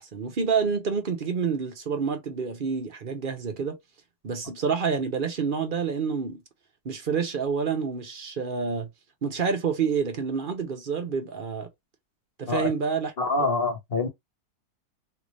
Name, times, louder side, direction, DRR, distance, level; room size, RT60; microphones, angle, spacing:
voice 1, 0.0-3.8 4.2-6.4 6.8-8.9 9.2-11.7 12.4-13.1, right 6 dB, 45° right, 0.7 m, -28 dB
voice 2, 13.2-14.1, left 3 dB, 40° left, 1.2 m, -25 dB
3.4 x 2.5 x 3.1 m
omnidirectional pair, 1.6 m